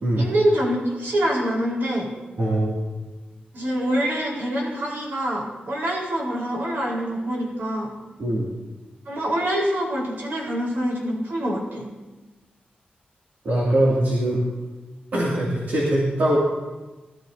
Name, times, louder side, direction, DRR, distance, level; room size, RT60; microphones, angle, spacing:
voice 1, 0.2-2.1 3.5-7.9 9.1-11.8, equal, 85° right, -4 dB, 4.2 m, -25 dB
voice 2, 2.4-2.8 8.2-8.5 13.4-14.4 15.1-16.4, right 1 dB, 65° right, -5 dB, 2.5 m, -22 dB
17.5 x 13.0 x 2.8 m, 1.2 s
wide cardioid pair, 140°, 3 cm